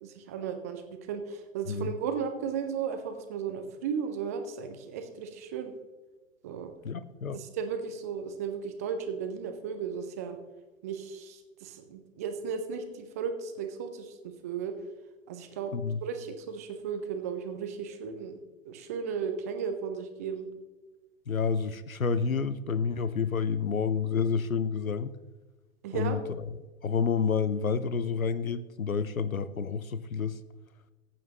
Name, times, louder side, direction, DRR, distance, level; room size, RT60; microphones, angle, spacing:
voice 1, 0.0-5.7 6.4-6.7 7.3-10.4 10.8-14.7 15.3-15.7 16.0-18.4 18.6-20.5 25.8-26.2, right 6 dB, 15° right, 7 dB, 0.4 m, -35 dB
voice 2, 6.8-7.4 15.7-16.0 21.3-25.2 25.9-26.2 26.8-30.4, left 6 dB, 90° left, 15 dB, 0.6 m, -29 dB
14.5 x 8.4 x 2.9 m, 1.2 s
figure-of-eight pair, 110°, 41 cm